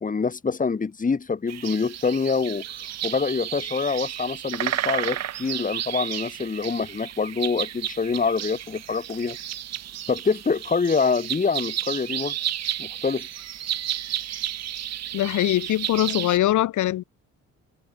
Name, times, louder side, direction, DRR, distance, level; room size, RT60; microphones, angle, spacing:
voice 1, 0.0-2.6 3.0-9.4 10.1-12.4 12.8-13.3, left 5 dB, 25° left, 1.9 m, -25 dB
sound 1, 1.5-16.4, right 11 dB, 60° right, 1.0 m, -32 dB
voice 2, 15.1-17.0, left 14 dB, 75° left, 1.3 m, -22 dB
cardioid pair, 90°, 30 cm